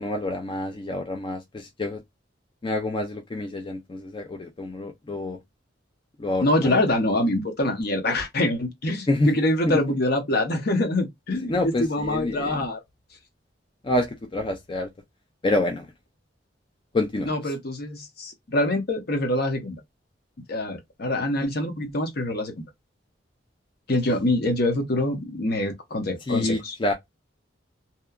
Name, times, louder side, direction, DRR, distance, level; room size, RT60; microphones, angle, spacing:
voice 1, 0.0-2.0 2.6-5.4 6.2-6.8 9.1-9.3 9.7-9.8 11.5-12.6 13.8-14.9 15.4-15.9 16.9-17.3 26.3-26.9, left 2 dB, 25° left, 0.4 m, -27 dB
voice 2, 6.4-12.8 17.2-19.8 20.5-22.6 23.9-26.8, left 1 dB, 55° left, 0.8 m, -25 dB
2.8 x 2.2 x 2.2 m
head